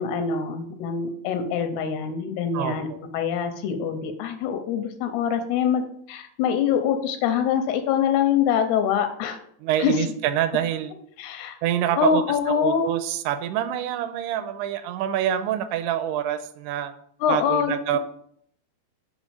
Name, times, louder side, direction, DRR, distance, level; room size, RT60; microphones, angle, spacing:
voice 1, 0.0-2.9 3.1-5.8 6.1-9.4 9.8-9.9 11.2-11.6 12.0-13.0 17.2-17.7, left 7 dB, 85° left, 7 dB, 2.7 m, -24 dB
voice 2, 2.5-3.0 9.6-10.9 11.6-16.9 17.3-18.0, right 11 dB, 85° right, 10 dB, 2.5 m, -26 dB
6.2 x 5.4 x 4.9 m, 0.67 s
omnidirectional pair, 4.8 m